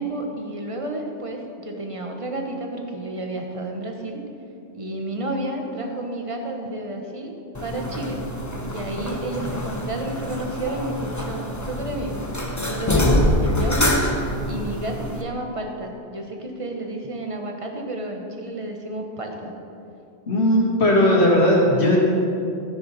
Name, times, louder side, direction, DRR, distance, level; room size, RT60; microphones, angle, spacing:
voice 1, 0.0-4.2 4.7-7.3 7.6-8.2 8.6-12.2 12.6-14.0 14.4-19.5, right 1 dB, 30° right, 2 dB, 1.2 m, -31 dB
sound 1, 7.5-15.2, left 1 dB, 15° left, 0.9 m, -26 dB
voice 2, 12.9-13.9 20.3-22.0, left 1 dB, 75° left, -2 dB, 2.3 m, -19 dB
14.0 x 9.6 x 4.2 m, 2.7 s
omnidirectional pair, 1.1 m